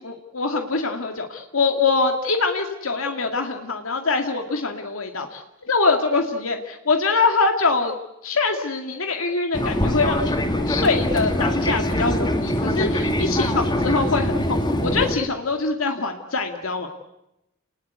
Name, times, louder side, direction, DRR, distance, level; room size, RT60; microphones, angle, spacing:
voice 1, 0.0-7.9 8.2-10.4 10.7-16.9, left 4 dB, 80° left, 4 dB, 2.2 m, -24 dB
Fixed-wing aircraft airplane, 9.5-15.2, left 1 dB, 20° left, 2.4 m, -23 dB
29.0 x 20.0 x 9.5 m, 0.90 s
head